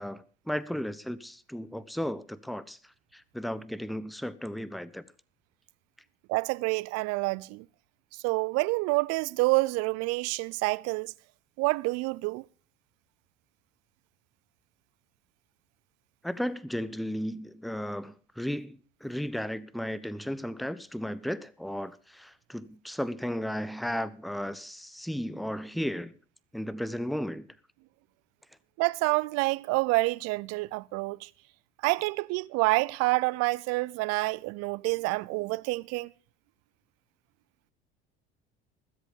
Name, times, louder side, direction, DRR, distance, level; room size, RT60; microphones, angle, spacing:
voice 1, 0.0-2.8 3.1-5.0 16.2-26.1 26.5-27.5, equal, ahead, 1.0 m, -34 dB
voice 2, 6.3-7.7 8.1-11.1 11.6-12.5 28.8-31.3 31.8-36.1, right 24 dB, 60° right, 0.6 m, -28 dB
20.5 x 8.1 x 5.2 m
hypercardioid pair, 70°, 29 cm